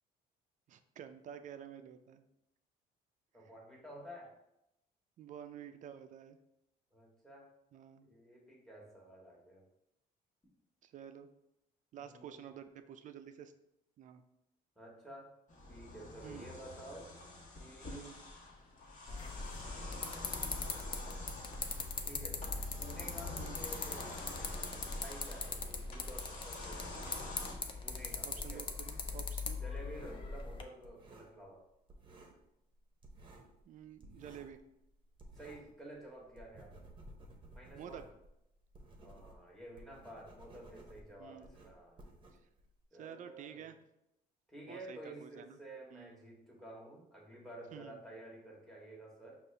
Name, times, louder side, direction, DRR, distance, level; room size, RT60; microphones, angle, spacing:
voice 1, 0.7-2.2 3.4-3.5 5.2-6.4 7.7-8.1 10.8-11.3 11.9-13.5 14.0-14.2 16.2-16.5 17.9-18.2 23.4-23.6 28.2-29.6 33.7-34.6 37.8-38.0 41.2-41.5 42.3-42.4 43.0-43.8 44.7-45.6 45.9-46.1 47.7-48.0, right 9 dB, 50° right, 9 dB, 0.4 m, -50 dB
voice 2, 3.3-4.3 6.9-7.5 8.0-9.6 11.9-12.4 14.8-15.3 15.7-17.1 17.6-18.1 19.5-20.5 22.0-22.4 22.8-27.4 27.8-28.7 29.5-31.7 35.3-36.9 37.5-38.1 39.0-42.0 42.9-43.7 44.5-49.4, right 1 dB, ahead, -2 dB, 1.2 m, -52 dB
sound 1, 15.5-27.5, left 2 dB, 50° left, 1.4 m, -48 dB
sound 2, 19.1-30.6, left 4 dB, 30° left, 0.5 m, -41 dB
sound 3, 27.9-28.8 29.0-31.6 31.9-32.5 32.7-35.8 36.1-42.8, right 1 dB, 30° right, 0.8 m, -56 dB
5.2 x 2.5 x 3.3 m, 0.83 s
cardioid pair, 110°, 17 cm